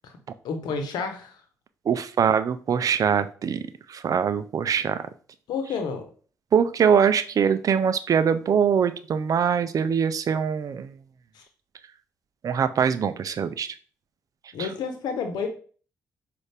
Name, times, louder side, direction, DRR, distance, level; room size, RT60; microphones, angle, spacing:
voice 1, 0.4-1.4 5.5-6.1 11.3-11.4 14.5-15.5, left 5 dB, 70° left, 6 dB, 0.9 m, -30 dB
voice 2, 1.9-3.6 3.9-5.0 6.5-10.9 12.4-13.7 14.6-14.7, right 7 dB, 55° right, 12 dB, 0.5 m, -23 dB
6.2 x 2.5 x 3.4 m, 0.41 s
hypercardioid pair, 50°, 7 cm